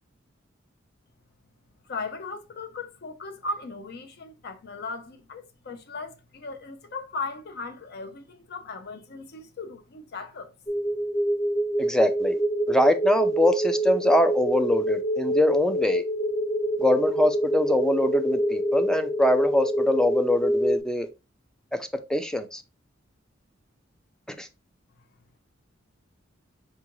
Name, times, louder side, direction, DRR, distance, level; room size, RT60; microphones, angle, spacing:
voice 1, 1.9-10.5, left 3 dB, 55° left, 0.6 m, -37 dB
sound 1, 10.7-20.8, right 1 dB, 20° left, 1.0 m, -26 dB
voice 2, 11.8-12.4 12.7-16.0 16.8-21.1 22.1-22.6 24.4-24.5, left 1 dB, 5° left, 0.4 m, -23 dB
5.4 x 2.5 x 2.9 m
head